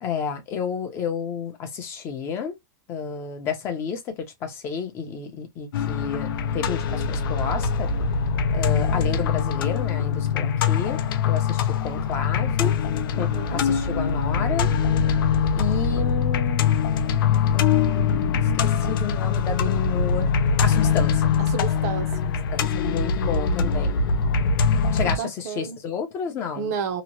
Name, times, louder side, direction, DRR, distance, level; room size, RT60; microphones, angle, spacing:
voice 1, 0.0-2.6 2.9-7.9 8.5-12.7 13.1-14.7 15.6-16.7 17.5-20.3 20.6-21.3 22.5-24.0 24.9-26.7, left 7 dB, 20° left, 0.5 m, -31 dB
sound 1, 5.7-25.2, left 6 dB, 85° left, 0.5 m, -23 dB
voice 2, 13.1-13.6 21.5-22.3 25.0-25.8 26.6-27.0, right 6 dB, 45° right, 0.5 m, -31 dB
2.8 x 2.0 x 2.8 m
supercardioid pair, 175°, 11 cm